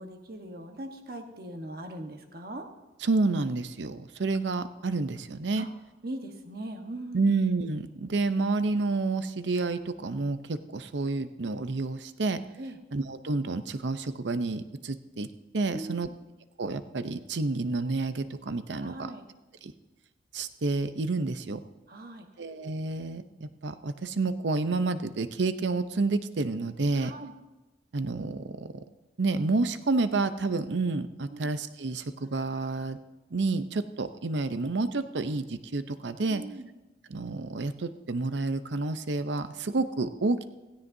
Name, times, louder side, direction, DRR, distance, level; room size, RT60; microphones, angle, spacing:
voice 1, 0.0-2.7 5.6-5.7 6.0-7.3 12.6-12.8 15.7-16.1 18.8-19.3 21.9-22.3 27.0-27.3 31.3-31.5 36.3-36.7, right 1 dB, 55° right, 4 dB, 1.2 m, -40 dB
voice 2, 3.0-5.7 7.1-12.4 12.9-15.3 15.5-16.1 16.6-18.9 19.6-19.7 20.3-21.6 22.4-27.1 27.9-28.8 29.2-33.0 33.3-36.4 37.1-40.4, right 3 dB, 80° right, 11 dB, 0.7 m, -29 dB
16.5 x 16.0 x 2.7 m, 1.1 s
head